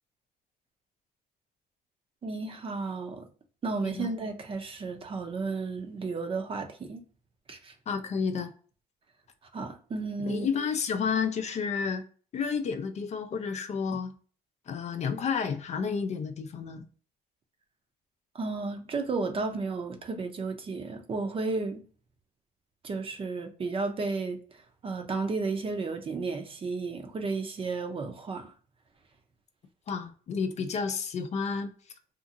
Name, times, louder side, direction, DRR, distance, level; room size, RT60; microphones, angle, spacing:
voice 1, 2.2-3.3 3.6-7.0 7.5-7.7 9.5-10.5 18.3-21.8 22.8-28.5, right 3 dB, 35° right, 0.6 m, -33 dB
voice 2, 7.9-8.5 10.2-12.0 12.3-14.1 14.7-16.8 29.9-31.7, left 6 dB, 40° left, 0.4 m, -31 dB
2.8 x 2.6 x 2.4 m
cardioid pair, 110°, 17 cm